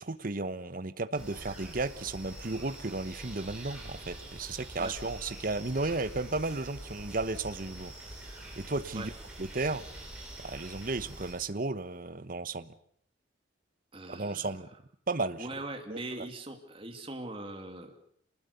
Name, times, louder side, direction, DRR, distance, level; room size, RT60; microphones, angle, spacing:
voice 1, 0.0-7.9 8.6-9.1 9.4-9.8 10.4-12.7 14.1-14.7 15.1-15.5 15.9-16.3, right 3 dB, 45° right, 12 dB, 1.1 m, -34 dB
sound 1, 1.1-11.3, right 1 dB, 5° right, 7.4 m, -45 dB
voice 2, 13.9-14.6 15.4-18.0, right 2 dB, 30° right, 4 dB, 2.9 m, -41 dB
27.0 x 20.0 x 6.9 m, 0.65 s
head